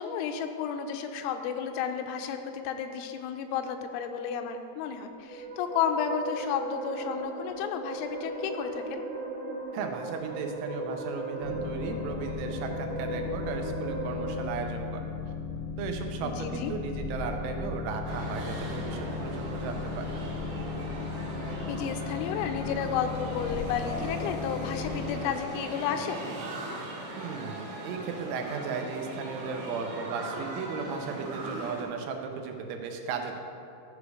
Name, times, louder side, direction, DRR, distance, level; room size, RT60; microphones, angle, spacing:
voice 1, 0.0-9.0 16.2-16.7 21.5-26.2, left 7 dB, 85° left, 6 dB, 3.0 m, -32 dB
sound 1, 5.0-14.4, right 2 dB, 70° right, 3.6 m, -37 dB
voice 2, 9.7-15.1 15.8-20.2 27.2-33.4, right 5 dB, 85° right, 4 dB, 3.3 m, -36 dB
Boat Water vehicle, 11.4-25.2, left 5 dB, 65° left, 1.5 m, -36 dB
sound 2, 18.0-31.8, right 1 dB, 55° right, 2.5 m, -39 dB
14.0 x 5.1 x 4.8 m, 2.5 s
omnidirectional pair, 5.4 m